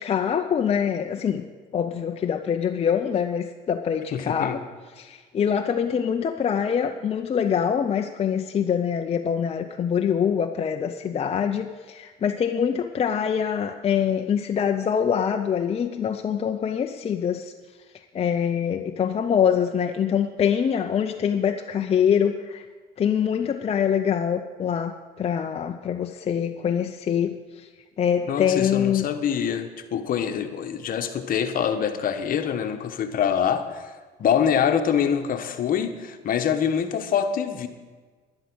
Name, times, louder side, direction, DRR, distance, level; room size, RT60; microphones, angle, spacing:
voice 1, 0.0-1.5 1.7-4.6 4.9-17.5 18.1-22.6 23.0-27.7 28.0-29.1, left 8 dB, 35° left, 5 dB, 0.6 m, -24 dB
voice 2, 4.1-4.6 28.3-33.9 34.2-37.7, left 8 dB, 55° left, 7 dB, 1.2 m, -25 dB
11.5 x 11.0 x 6.2 m, 1.4 s
cardioid pair, 110°, 17 cm